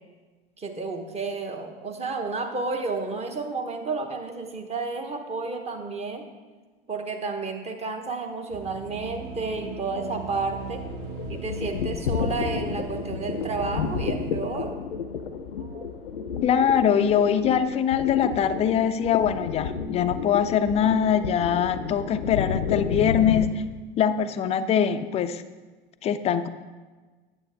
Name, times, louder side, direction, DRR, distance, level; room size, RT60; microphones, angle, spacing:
voice 1, 0.6-6.3 6.9-10.9 11.3-14.8 15.6-15.9 20.0-20.1 22.0-22.4, right 3 dB, 20° right, 4 dB, 0.9 m, -31 dB
sound 1, 8.5-14.5, right 6 dB, 45° right, 1.0 m, -39 dB
sound 2, 10.8-23.5, left 6 dB, 80° left, 0.6 m, -31 dB
voice 2, 16.4-23.6 24.0-25.4 26.0-26.5, left 8 dB, 25° left, 11 dB, 0.4 m, -23 dB
9.0 x 7.5 x 3.4 m, 1.3 s
hypercardioid pair, 85°, 29 cm